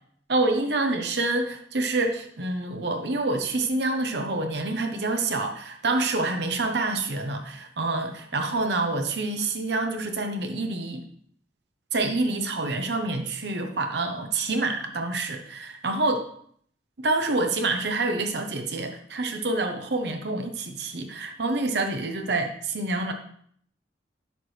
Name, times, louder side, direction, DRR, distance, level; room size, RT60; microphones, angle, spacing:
voice 1, 0.3-11.0 11.9-16.3 17.0-23.1, right 2 dB, 65° right, 5 dB, 0.9 m, -27 dB
11.0 x 4.7 x 3.3 m, 0.63 s
head